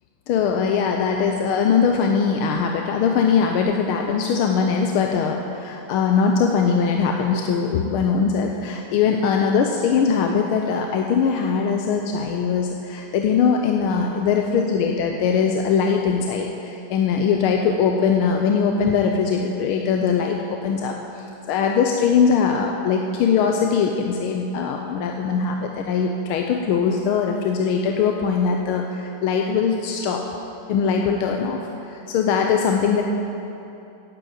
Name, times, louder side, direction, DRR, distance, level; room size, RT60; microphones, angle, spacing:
voice 1, 0.3-30.2 30.7-33.0, left 6 dB, 85° left, 2 dB, 1.6 m, -21 dB
9.7 x 7.8 x 8.8 m, 2.8 s
omnidirectional pair, 2.4 m